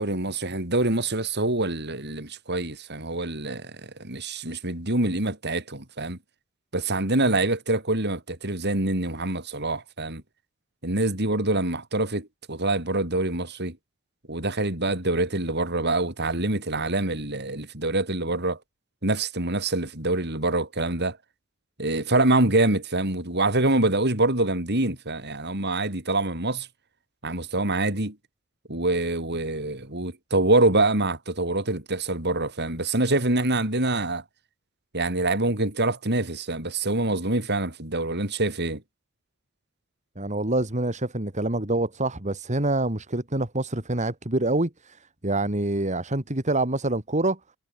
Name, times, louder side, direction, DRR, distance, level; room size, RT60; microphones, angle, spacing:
voice 1, 0.0-6.2 6.7-10.2 10.8-13.8 14.3-18.6 19.0-21.2 21.8-26.7 27.2-28.2 28.7-34.2 34.9-38.8, right 2 dB, 50° right, 6.4 m, -25 dB
voice 2, 40.2-45.0 45.2-47.4, right 2 dB, 35° right, 2.7 m, -26 dB
head